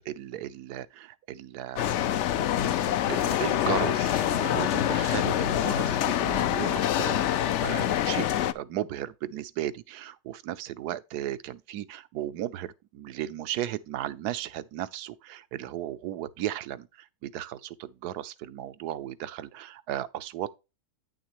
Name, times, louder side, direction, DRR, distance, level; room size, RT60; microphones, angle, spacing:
voice 1, 0.0-2.0 3.1-7.2 7.6-8.3 8.5-20.5, right 12 dB, 80° right, 1.2 m, -35 dB
sound 1, 1.8-8.5, left 11 dB, 70° left, 0.7 m, -26 dB
9.4 x 6.4 x 3.0 m
omnidirectional pair, 1.7 m